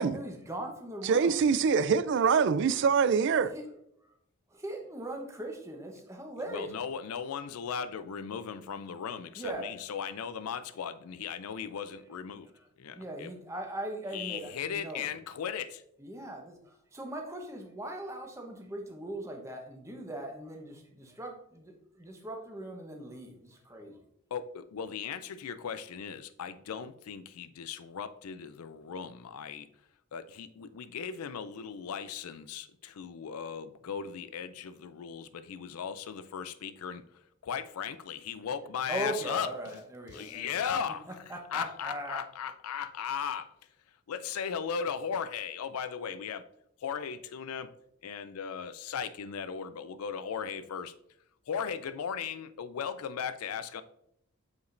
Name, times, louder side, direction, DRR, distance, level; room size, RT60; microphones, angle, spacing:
voice 1, 0.0-1.4 3.5-3.6 4.5-6.7 9.4-9.7 12.6-12.7 12.9-15.0 16.0-24.0 38.9-40.7 41.3-42.2, right 1 dB, 15° right, 1.0 m, -40 dB
voice 2, 1.0-3.5, right 6 dB, 55° right, 0.3 m, -24 dB
voice 3, 6.5-12.5 12.8-13.3 14.1-15.8 24.3-29.7 30.1-37.0 37.4-39.5 40.1-43.5 44.1-46.5 46.8-47.7 48.0-50.9 51.5-53.8, left 7 dB, 85° left, 0.4 m, -37 dB
8.2 x 5.0 x 2.6 m
head